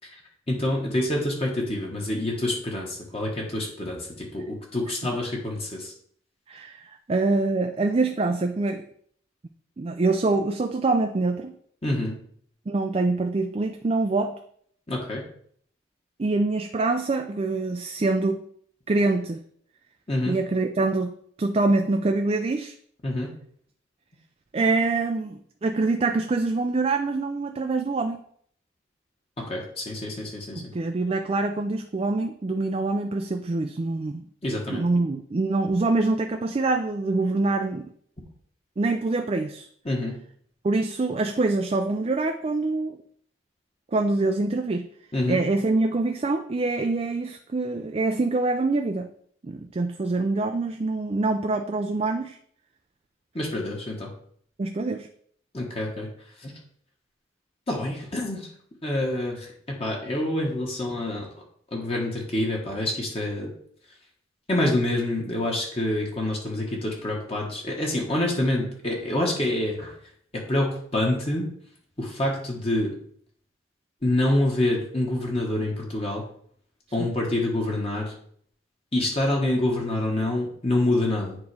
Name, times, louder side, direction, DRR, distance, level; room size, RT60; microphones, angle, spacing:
voice 1, 0.5-5.9 11.8-12.1 14.9-15.2 20.1-20.3 23.0-23.3 29.4-30.7 34.4-34.8 39.8-40.2 45.1-45.4 53.3-54.1 55.5-56.1 56.4-56.5 57.7-58.5 58.8-61.3 61.7-63.5 64.5-69.9 70.3-71.5 72.0-72.9 74.0-76.2 76.9-78.1 78.9-81.4, left 1 dB, 30° left, -2 dB, 1.3 m, -27 dB
voice 2, 6.5-8.8 9.8-11.6 12.7-14.3 16.2-18.4 18.9-19.4 20.3-21.1 21.4-22.8 24.5-28.2 30.6-34.2 34.7-37.9 38.8-39.7 40.6-43.0 43.9-44.9 45.3-49.1 49.4-52.4 54.6-55.1 77.0-77.1, right 3 dB, 30° right, 5 dB, 0.4 m, -25 dB
9.4 x 3.1 x 4.8 m, 0.62 s
head